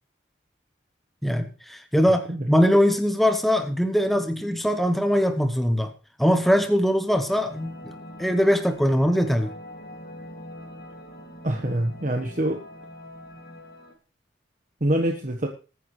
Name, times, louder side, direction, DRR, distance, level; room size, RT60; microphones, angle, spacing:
voice 1, 1.2-5.9 6.2-7.9 8.2-9.5, equal, ahead, 7 dB, 0.9 m, -21 dB
sound 1, 7.3-13.9, left 1 dB, 50° left, 2.3 m, -43 dB
voice 2, 11.4-12.6 14.8-15.5, right 1 dB, 40° right, 3 dB, 1.2 m, -25 dB
21.0 x 9.3 x 3.2 m, 0.33 s
head